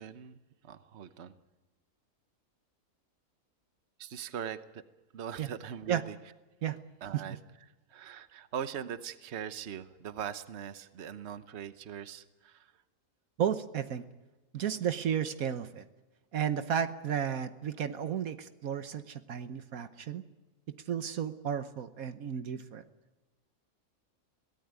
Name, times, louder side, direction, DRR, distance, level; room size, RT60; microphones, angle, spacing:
voice 1, 0.0-1.4 4.0-4.8 5.1-6.2 7.0-7.4 7.9-12.8, right 8 dB, 50° right, 12 dB, 1.2 m, -41 dB
voice 2, 13.4-14.0 14.5-15.8 16.3-20.2 20.7-22.8, right 8 dB, 70° right, 11 dB, 1.4 m, -33 dB
22.5 x 18.0 x 9.4 m, 1.1 s
omnidirectional pair, 1.5 m